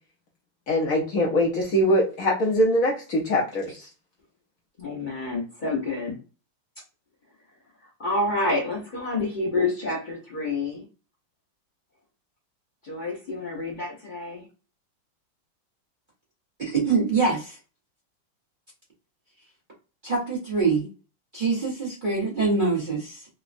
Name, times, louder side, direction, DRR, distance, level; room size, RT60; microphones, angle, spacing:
voice 1, 0.7-3.9, equal, 60° left, -2 dB, 0.9 m, -23 dB
voice 2, 4.8-6.2 7.8-10.8 12.8-14.5, left 2 dB, 75° left, -5 dB, 0.4 m, -28 dB
voice 3, 16.6-17.6 20.0-20.9 21.3-23.3, right 4 dB, 35° right, -6 dB, 0.8 m, -24 dB
3.5 x 2.1 x 2.4 m, 0.34 s
omnidirectional pair, 2.1 m